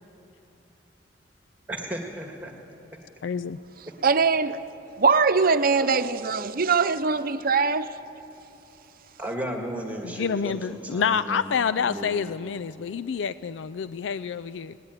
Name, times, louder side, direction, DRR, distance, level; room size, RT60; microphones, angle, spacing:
voice 1, 1.7-2.5 9.2-11.4 11.7-12.2, right 1 dB, 10° right, 1.8 m, -34 dB
voice 2, 3.2-3.6 10.0-14.8, left 6 dB, 75° left, 0.4 m, -28 dB
voice 3, 4.0-4.6 5.0-7.9, right 5 dB, 50° right, 0.8 m, -22 dB
21.5 x 19.0 x 9.2 m
head